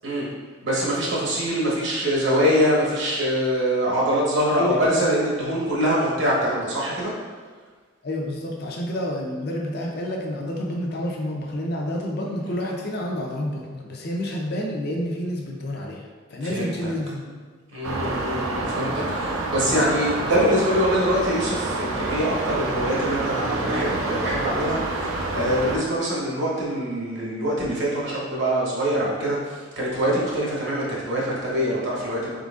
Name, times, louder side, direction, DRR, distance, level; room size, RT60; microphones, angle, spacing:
voice 1, 0.6-7.1 16.4-16.9 17.7-32.4, equal, 60° right, -5 dB, 1.1 m, -24 dB
voice 2, 4.6-5.0 8.0-17.4, left 1 dB, 50° left, 0 dB, 0.6 m, -29 dB
sound 1, 17.8-25.8, right 2 dB, 85° right, 0.6 m, -27 dB
4.2 x 3.8 x 2.4 m, 1.5 s
head